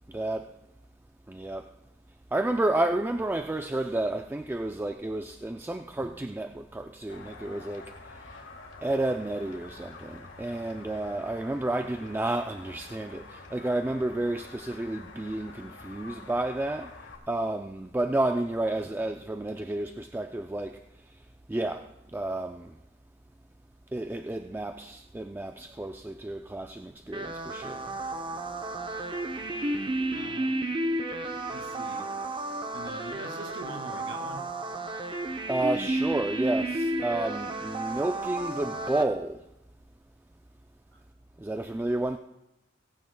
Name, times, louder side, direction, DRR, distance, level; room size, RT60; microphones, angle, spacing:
voice 1, 0.1-0.5 1.3-1.7 2.3-7.9 8.8-16.9 17.3-20.8 21.5-22.7 23.9-27.8 35.5-39.4 41.4-42.2, right 2 dB, 10° right, 0.3 m, -31 dB
sound 1, 7.1-17.2, left 3 dB, 85° left, 1.6 m, -47 dB
sound 2, 27.1-39.0, right 1 dB, 25° right, 0.7 m, -32 dB
voice 2, 30.1-30.6 31.5-32.1 32.7-34.5 40.9-41.0, right 2 dB, 80° right, 2.0 m, -43 dB
18.0 x 15.5 x 2.2 m
head